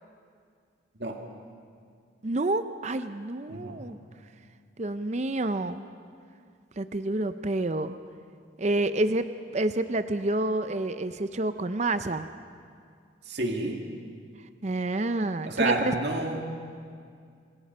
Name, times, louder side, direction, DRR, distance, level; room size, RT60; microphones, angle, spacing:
voice 1, 2.2-4.0 4.8-5.8 6.8-8.0 8.6-9.3 9.5-12.3 14.6-15.9, right 2 dB, 35° right, 10 dB, 0.6 m, -28 dB
voice 2, 3.5-3.8 13.2-13.8 15.5-16.5, right 2 dB, 60° right, 2 dB, 2.2 m, -29 dB
27.5 x 21.0 x 5.5 m, 2.2 s
head